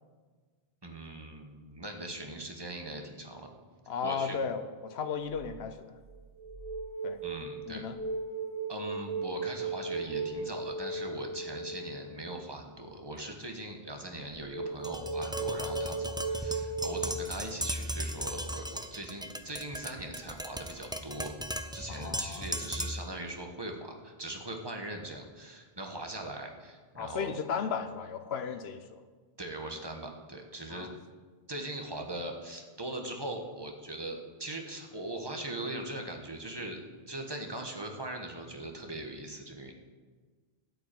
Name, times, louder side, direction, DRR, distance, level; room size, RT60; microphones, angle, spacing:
voice 1, 0.8-3.5 4.0-4.4 7.2-7.9 8.7-21.3 21.7-27.3 29.4-30.9 31.5-36.8 37.1-39.7, right 1 dB, 25° right, 2 dB, 1.3 m, -40 dB
voice 2, 3.9-6.0 7.0-7.2 7.7-8.0 21.9-22.6 27.0-29.0 30.7-30.9, left 6 dB, 80° left, 10 dB, 1.1 m, -35 dB
sound 1, 5.3-5.6 6.1-12.0 14.5-17.1, right 3 dB, 40° right, 1.0 m, -36 dB
Tap, 14.8-23.1, equal, 5° right, 0.4 m, -37 dB
12.5 x 5.4 x 9.0 m, 1.5 s
omnidirectional pair, 1.0 m